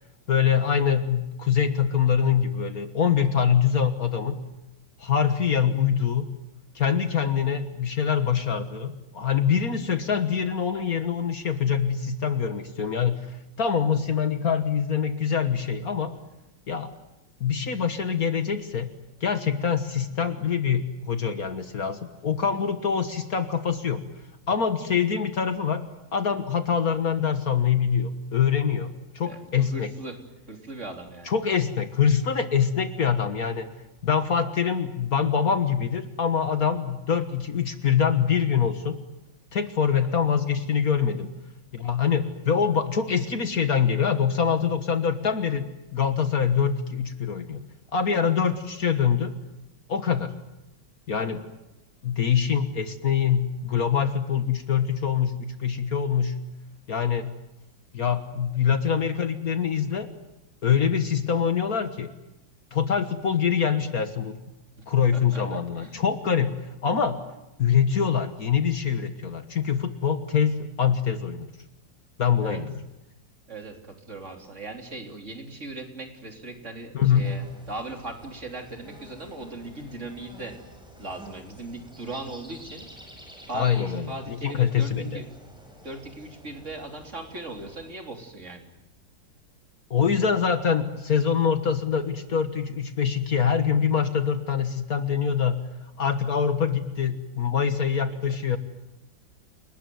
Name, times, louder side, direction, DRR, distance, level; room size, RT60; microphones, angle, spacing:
voice 1, 0.3-4.4 5.0-6.3 6.7-16.1 16.7-16.9 17.4-18.9 19.2-24.0 24.5-25.8 26.1-29.9 31.2-33.7 34.0-39.0 39.5-41.3 41.7-47.6 47.9-49.3 49.9-50.3 51.1-51.4 52.0-56.4 56.9-57.3 57.9-60.1 60.6-62.1 62.7-64.4 64.9-66.5 66.8-67.2 67.6-71.5 72.2-72.7 76.9-77.2 83.5-85.2 89.9-95.6 96.0-98.6, left 7 dB, 50° left, 9 dB, 1.8 m, -24 dB
voice 2, 29.3-30.2 30.5-31.3 64.8-64.9 65.1-66.0 72.4-72.6 73.5-80.6 81.0-82.9 83.5-85.3 85.8-88.7 97.9-98.2, right 2 dB, 40° right, 3 dB, 3.7 m, -39 dB
sound 1, 77.1-87.9, equal, ahead, 6.8 m, -49 dB
29.5 x 19.5 x 9.4 m, 0.94 s
omnidirectional pair, 2.0 m